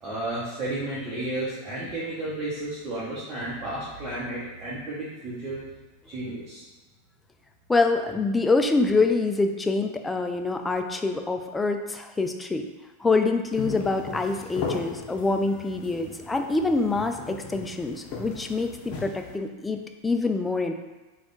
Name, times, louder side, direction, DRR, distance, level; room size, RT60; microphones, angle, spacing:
voice 1, 0.0-5.6 6.1-6.6, right 2 dB, 35° right, -9 dB, 1.0 m, -32 dB
voice 2, 7.7-12.7 13.0-19.8 20.0-20.7, left 3 dB, 15° left, 5 dB, 0.3 m, -25 dB
sound 1, 13.5-19.4, left 4 dB, 45° left, 0.7 m, -37 dB
3.5 x 2.4 x 3.8 m, 1.2 s
hypercardioid pair, 90°, 0 cm